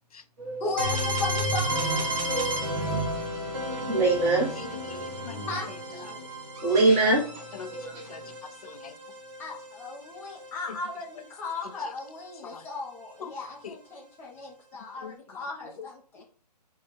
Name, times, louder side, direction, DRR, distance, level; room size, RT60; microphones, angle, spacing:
voice 1, 0.6-2.2 2.8-3.0 3.7-4.1 5.5-5.7 6.0-6.3 9.4-16.2, left 3 dB, 10° left, -2 dB, 0.9 m, -37 dB
sound 1, 0.8-10.5, right 1 dB, 50° right, 1.7 m, -32 dB
voice 2, 2.3-2.8 3.7-4.5 5.0-5.1 6.6-7.2 7.7-8.0, right 2 dB, 15° right, -3 dB, 1.2 m, -24 dB
voice 3, 4.6-5.0 5.2-5.5 7.5-8.2 8.6-9.0 12.4-12.6 13.2-13.3 13.6-13.7 15.0-15.1, left 6 dB, 60° left, 9 dB, 0.6 m, -42 dB
4.3 x 2.4 x 4.7 m, 0.43 s
figure-of-eight pair, 145°, 21 cm